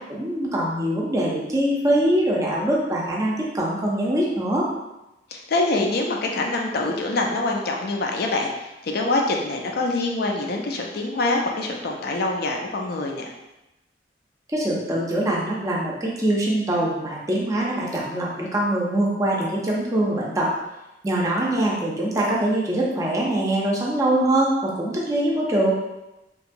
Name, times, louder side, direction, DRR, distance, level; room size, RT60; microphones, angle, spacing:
voice 1, 0.1-4.7 14.5-20.5 21.0-25.7, right 1 dB, 20° right, -4 dB, 0.5 m, -23 dB
voice 2, 5.3-13.3, left 2 dB, 60° left, 1 dB, 0.4 m, -25 dB
2.8 x 2.2 x 2.5 m, 0.97 s
head